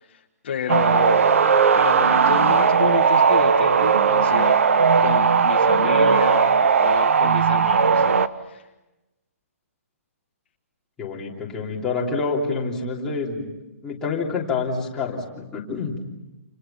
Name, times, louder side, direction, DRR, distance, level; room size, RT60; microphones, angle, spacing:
voice 1, 0.0-1.3 1.7-4.6 5.0-8.0 8.4-8.7, left 8 dB, 45° left, 3 dB, 1.6 m, -29 dB
sound 1, 0.7-8.3, right 6 dB, 60° right, 1.3 m, -17 dB
voice 2, 11.0-13.5 13.8-16.0, left 4 dB, 5° left, -5 dB, 3.3 m, -27 dB
29.5 x 29.0 x 5.8 m, 0.99 s
hypercardioid pair, 180°, 8 cm